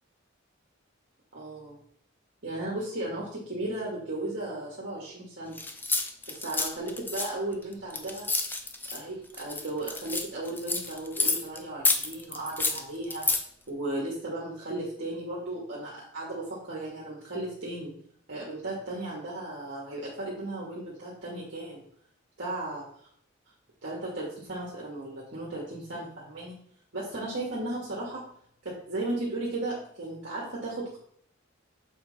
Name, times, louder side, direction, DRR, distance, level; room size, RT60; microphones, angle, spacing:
voice 1, 1.3-1.8 2.4-5.6 6.3-8.3 8.9-13.3 13.7-17.9 18.3-21.8 22.4-23.1 23.8-26.5 26.9-28.2 28.6-31.0, right 2 dB, 60° right, -5 dB, 1.6 m, -35 dB
sound 1, 5.6-9.0 9.3-11.6 11.8-13.4, left 3 dB, 10° left, 0.5 m, -29 dB
7.1 x 4.8 x 4.0 m, 0.65 s
head